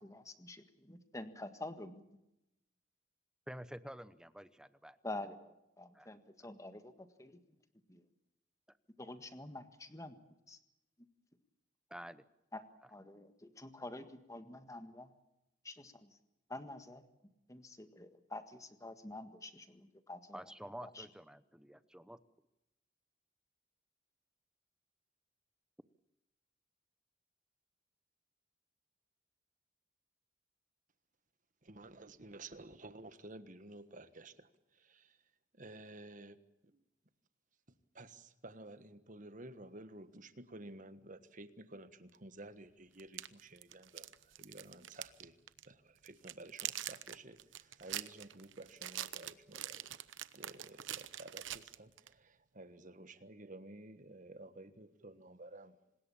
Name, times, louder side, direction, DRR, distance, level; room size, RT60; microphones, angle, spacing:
voice 1, 0.0-2.0 5.0-7.4 7.9-8.0 9.0-10.2 10.5-10.6 12.5-12.6 12.9-15.1 15.6-16.2 16.5-17.0 17.5-20.4 20.8-21.1, left 2 dB, 15° left, 9 dB, 1.7 m, -48 dB
voice 2, 3.5-5.0 5.9-6.1 8.7-8.8 11.9-12.2 20.3-22.2, equal, 5° right, 14 dB, 0.8 m, -49 dB
voice 3, 31.6-35.2 35.5-36.4 36.6-36.8 37.7-45.4 45.6-49.9 50.3-55.8, right 2 dB, 45° right, 12 dB, 1.4 m, -53 dB
sound 1, 43.0-45.2 45.5-45.7 46.1-52.1, right 12 dB, 80° right, 0.9 m, -44 dB
26.0 x 20.0 x 7.2 m, 0.89 s
head